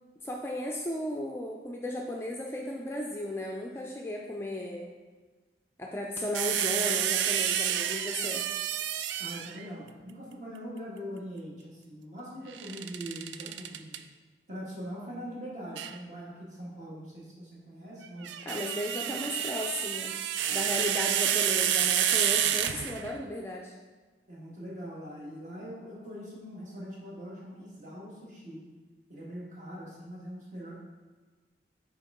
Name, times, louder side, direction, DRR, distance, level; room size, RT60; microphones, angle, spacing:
voice 1, 0.2-4.9 5.8-8.4 13.5-13.6 18.5-20.2 20.5-23.7, left 1 dB, 15° left, -1 dB, 0.4 m, -35 dB
sound 1, 6.3-9.7 12.5-14.0 15.8-16.0 18.1-23.2, right 10 dB, 90° right, 0.3 m, -29 dB
voice 2, 9.2-14.0 14.5-18.4 19.0-19.1 20.4-20.7 22.4-22.5 24.3-28.7 29.1-30.7, equal, 45° right, -4 dB, 1.5 m, -42 dB
6.6 x 4.5 x 3.6 m, 1.4 s
head